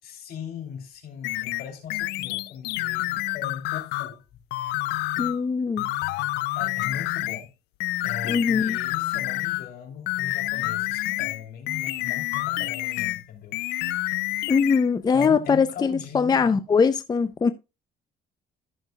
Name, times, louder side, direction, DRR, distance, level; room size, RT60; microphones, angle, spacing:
voice 1, 0.0-4.2 6.5-7.5 8.0-13.6 15.1-16.6, left 7 dB, 65° left, 3.0 m, -39 dB
sound 1, 1.2-4.1 4.5-5.4 5.8-7.4 7.8-9.7 10.1-13.2 13.5-14.9 15.2-15.3, left 18 dB, 90° left, 0.5 m, -28 dB
voice 2, 5.2-5.8 8.3-8.8 14.5-17.5, left 5 dB, 25° left, 0.5 m, -22 dB
14.0 x 6.5 x 2.3 m
cardioid pair, 110°, 17 cm